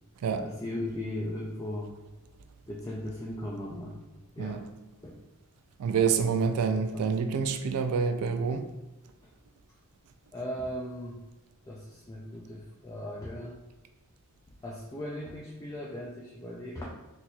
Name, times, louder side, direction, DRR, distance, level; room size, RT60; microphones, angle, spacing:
voice 1, 0.4-1.9 2.7-4.0 4.4-4.6 5.0-5.2 6.0-7.2 10.3-11.2 11.7-13.6 14.6-16.9, left 1 dB, 15° left, 0.3 m, -38 dB
voice 2, 5.8-8.7, right 6 dB, 85° right, 0.3 m, -27 dB
3.8 x 2.8 x 2.3 m
head